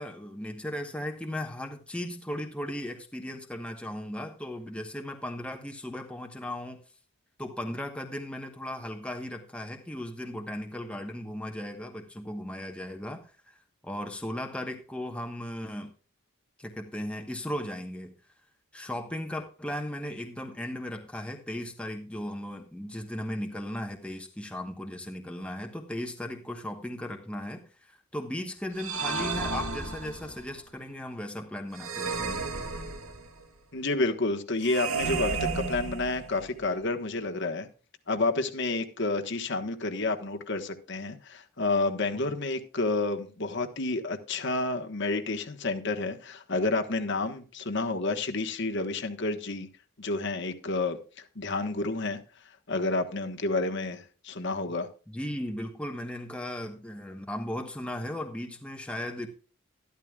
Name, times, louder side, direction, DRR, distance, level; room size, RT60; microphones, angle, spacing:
voice 1, 0.0-6.8 7.4-15.9 16.6-18.1 18.7-32.4 55.1-59.3, left 1 dB, 5° left, 4 dB, 1.1 m, -37 dB
sound 1, 28.8-30.5 31.8-33.4 34.6-36.5, right 4 dB, 75° right, 2.4 m, -32 dB
voice 2, 33.7-37.7 38.1-49.7 50.0-52.2 52.7-54.9, left 3 dB, 55° left, 5 dB, 1.3 m, -30 dB
13.0 x 12.0 x 2.4 m, 0.37 s
head